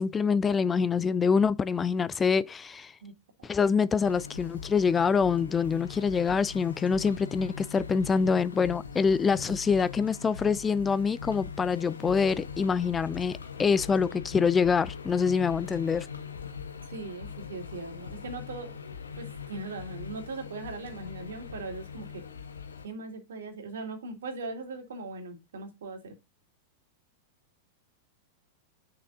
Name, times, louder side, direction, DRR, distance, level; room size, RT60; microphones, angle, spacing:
voice 1, 0.0-2.9 3.4-16.1, left 5 dB, 20° left, 0.4 m, -25 dB
sound 1, 4.0-22.9, left 6 dB, 80° left, 1.2 m, -41 dB
voice 2, 16.9-18.7 19.2-22.2 22.8-26.1, right 3 dB, 70° right, 2.3 m, -39 dB
8.6 x 6.1 x 2.6 m
figure-of-eight pair, 95°, 0 cm